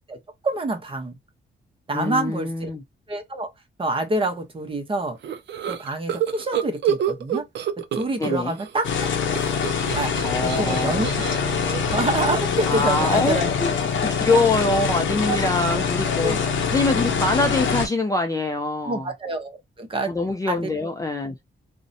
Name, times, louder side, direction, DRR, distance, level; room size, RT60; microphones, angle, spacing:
voice 1, 0.4-1.2 1.9-2.7 3.1-3.5 3.8-5.2 5.7-7.4 8.0-9.4 9.9-11.1 11.7-13.5 15.3-15.4 15.7-15.9 16.2-16.4 18.8-20.1 20.5-20.7, right 2 dB, 30° right, 0.6 m, -27 dB
voice 2, 1.9-2.8 8.2-8.6 10.2-11.0 12.6-13.7 14.0-16.4 16.7-19.1 20.1-21.3, left 2 dB, 15° left, 0.3 m, -24 dB
sound 1, 5.2-8.7 9.0-13.5, right 9 dB, 65° right, 0.4 m, -29 dB
sound 2, 8.8-17.9, left 6 dB, 85° left, 0.6 m, -24 dB
2.6 x 2.1 x 2.6 m
wide cardioid pair, 125°, 19 cm